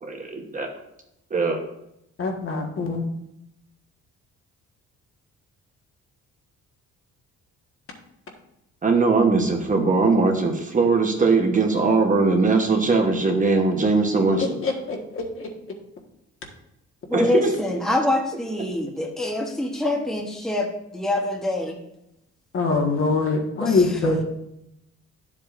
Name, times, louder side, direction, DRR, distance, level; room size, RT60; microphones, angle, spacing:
voice 1, 0.0-0.7 1.3-1.6 8.8-14.4 17.1-17.5, right 3 dB, 25° right, 3 dB, 1.0 m, -20 dB
voice 2, 2.2-3.0 14.4-15.5 22.5-24.2, left 3 dB, 45° left, 2 dB, 1.5 m, -24 dB
voice 3, 17.1-20.7 20.9-21.8 23.6-23.8, left 1 dB, ahead, 1 dB, 1.0 m, -25 dB
12.0 x 7.5 x 2.5 m, 0.82 s
cardioid pair, 150°, 30 cm